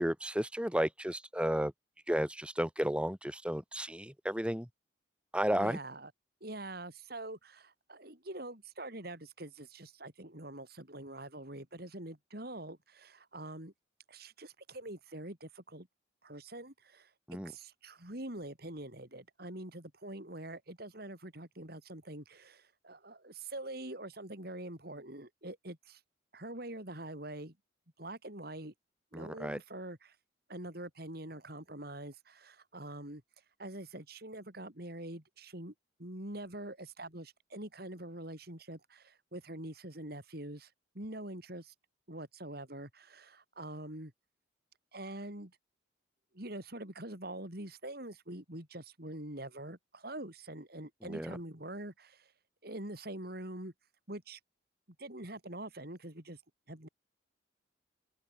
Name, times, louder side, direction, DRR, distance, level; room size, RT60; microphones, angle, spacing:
voice 1, 0.0-1.7 2.1-4.7 5.3-5.8 17.3-17.5 29.1-29.6 51.0-51.4, equal, 5° right, 3.1 m, -33 dB
voice 2, 5.5-6.1 6.4-13.7 14.1-15.9 16.2-17.1 17.4-26.0 26.3-27.5 28.0-28.7 29.1-30.2 30.5-33.2 33.6-35.7 36.0-41.7 42.1-44.1 44.9-45.5 46.3-52.3 52.6-53.7 54.1-54.4 55.0-56.4 56.7-56.9, right 1 dB, 55° right, 4.7 m, -45 dB
open air
head